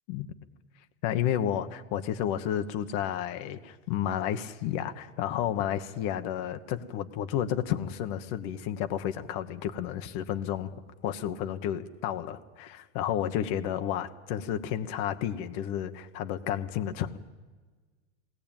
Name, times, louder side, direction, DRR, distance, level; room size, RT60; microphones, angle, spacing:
voice 1, 1.0-17.2, left 10 dB, 55° left, 8 dB, 1.3 m, -31 dB
21.0 x 17.0 x 9.0 m, 1.4 s
supercardioid pair, 125°, 36 cm